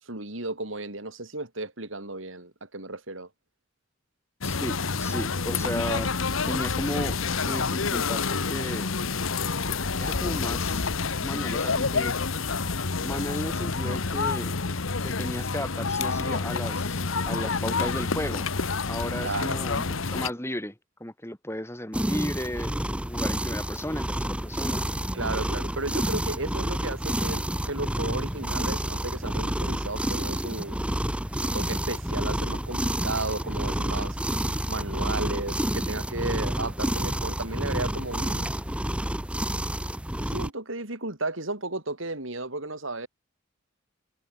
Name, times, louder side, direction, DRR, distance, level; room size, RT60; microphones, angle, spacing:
voice 1, 0.0-3.3 19.2-19.6 25.1-30.8 31.3-34.2 34.7-38.5 40.2-43.1, right 2 dB, 75° right, 5.5 m, -34 dB
sound 1, 4.4-20.3, left 4 dB, 85° left, 1.3 m, -28 dB
voice 2, 4.4-6.1 6.5-8.9 10.0-10.9 11.2-12.1 13.0-14.5 15.0-18.5 18.9-19.8 20.1-20.7 21.0-22.8 23.0-24.9, left 1 dB, 15° left, 6.0 m, -34 dB
sound 2, 21.9-40.5, right 1 dB, 5° right, 1.2 m, -29 dB
head